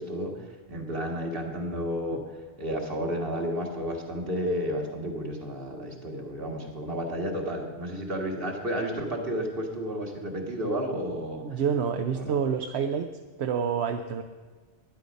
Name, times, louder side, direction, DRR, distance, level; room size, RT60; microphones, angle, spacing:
voice 1, 0.0-2.2 2.6-11.6 12.1-12.4, equal, 60° right, 1 dB, 1.9 m, -32 dB
voice 2, 11.4-13.1 13.4-14.2, right 7 dB, 80° right, 6 dB, 0.9 m, -28 dB
12.0 x 9.9 x 5.2 m, 1.4 s
omnidirectional pair, 1.1 m